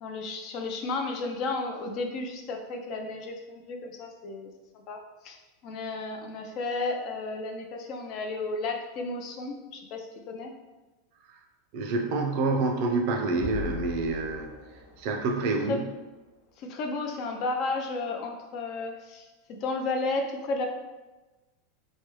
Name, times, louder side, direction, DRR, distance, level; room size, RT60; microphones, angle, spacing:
voice 1, 0.0-4.5 4.9-5.4 5.6-10.5 15.7-15.8 16.6-19.3 19.6-20.7, left 3 dB, 45° left, 3 dB, 0.4 m, -33 dB
voice 2, 11.7-14.5 15.0-15.9, right 3 dB, 55° right, 4 dB, 0.4 m, -27 dB
sound 1, 12.5-15.7, left 6 dB, 65° left, 0.7 m, -41 dB
3.2 x 2.2 x 3.0 m, 1.1 s
supercardioid pair, 140°, 0 cm